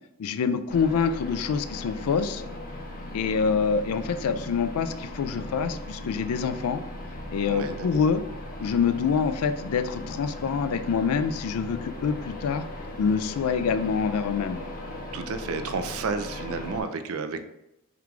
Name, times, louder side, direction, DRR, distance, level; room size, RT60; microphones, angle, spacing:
voice 1, 0.2-2.4 3.1-6.8 7.3-8.2 8.6-12.6 13.0-14.6, left 6 dB, 75° left, 10 dB, 0.3 m, -26 dB
sound 1, 0.7-16.8, left 1 dB, 40° left, 0.7 m, -38 dB
voice 2, 7.5-7.9 15.1-17.4, right 4 dB, 65° right, 9 dB, 0.4 m, -31 dB
3.8 x 2.3 x 4.5 m, 0.90 s
head